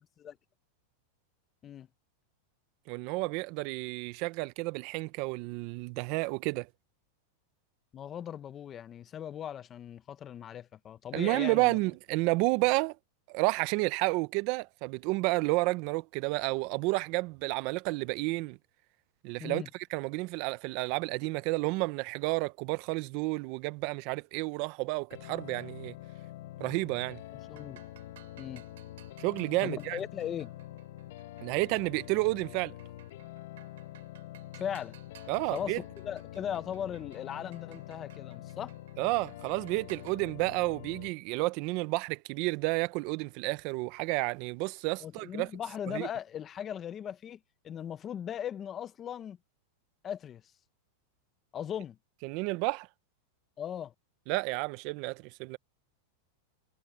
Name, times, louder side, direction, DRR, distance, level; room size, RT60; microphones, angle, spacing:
voice 1, 2.9-6.7 11.1-13.0 13.3-18.6 19.2-19.6 19.9-25.9 26.6-27.2 29.2-30.0 31.4-32.7 35.3-35.8 39.0-45.5 45.9-46.1 52.2-52.9 54.3-55.6, right 23 dB, 45° right, 0.6 m, -31 dB
voice 2, 7.9-11.8 19.4-19.7 27.3-27.8 28.4-28.6 29.6-30.5 34.5-35.0 35.5-38.7 45.0-49.4 50.0-50.4 51.5-52.0 53.6-53.9, left 9 dB, 20° left, 0.7 m, -38 dB
sound 1, 25.1-41.1, left 14 dB, 65° left, 1.0 m, -46 dB
sound 2, 27.4-40.1, right 14 dB, 75° right, 3.1 m, -60 dB
supercardioid pair, 155°, 0 cm